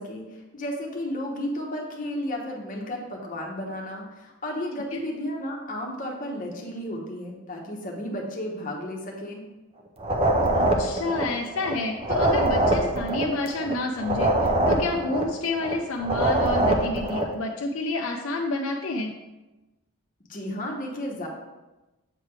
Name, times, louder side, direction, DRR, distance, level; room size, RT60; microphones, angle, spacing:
voice 1, 0.0-9.4 20.3-21.3, left 1 dB, 35° left, -1 dB, 1.0 m, -33 dB
sound 1, 10.0-11.7 12.0-15.7 16.0-17.4, right 1 dB, 25° right, 0.5 m, -24 dB
voice 2, 10.5-19.1, left 2 dB, 70° left, 2 dB, 0.5 m, -29 dB
7.7 x 3.3 x 4.7 m, 1.1 s
head